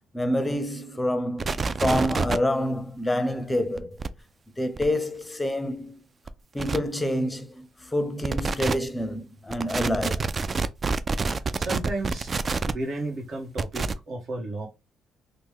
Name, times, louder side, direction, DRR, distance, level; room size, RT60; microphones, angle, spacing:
voice 1, 0.1-4.0 4.6-6.0 6.5-10.3, left 1 dB, 15° left, 0.6 m, -27 dB
sound 1, 1.4-2.4 3.8-4.1 4.8-4.9 6.3-6.4 6.6-6.8 8.2-8.7 9.5-12.7 13.6-13.9, right 4 dB, 35° right, 0.3 m, -27 dB
voice 2, 11.6-12.3 12.6-14.7, right 2 dB, 60° right, 1.2 m, -33 dB
3.1 x 2.1 x 3.4 m
cardioid pair, 90°, 0 cm